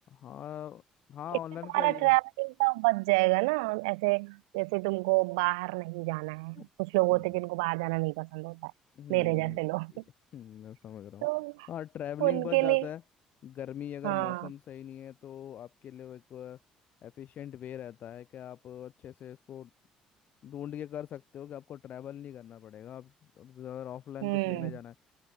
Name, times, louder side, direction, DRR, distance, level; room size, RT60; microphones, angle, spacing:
voice 1, 0.1-0.8 1.1-2.1 6.6-6.7 7.1-7.3 8.9-9.6 9.9-10.0 10.3-11.3 11.7-13.0 13.4-16.6 17.0-19.7 20.4-24.9, left 10 dB, 55° left, 3.2 m, -42 dB
voice 2, 1.7-8.7 9.1-10.0 11.2-11.7 12.2-12.9 14.0-14.5 24.2-24.8, right 27 dB, 70° right, 0.5 m, -28 dB
figure-of-eight pair, 50°, 3 cm